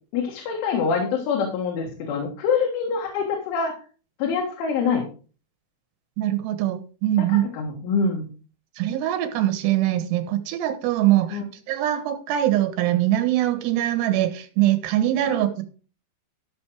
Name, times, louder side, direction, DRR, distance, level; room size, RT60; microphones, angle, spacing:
voice 1, 0.1-3.7 4.2-5.1 7.2-8.3 11.3-11.5 15.3-15.5, left 5 dB, 90° left, 0 dB, 4.3 m, -25 dB
voice 2, 6.2-7.5 8.8-11.4 11.7-15.6, right 13 dB, 70° right, 9 dB, 3.1 m, -22 dB
13.5 x 6.2 x 4.6 m, 0.37 s
omnidirectional pair, 5.4 m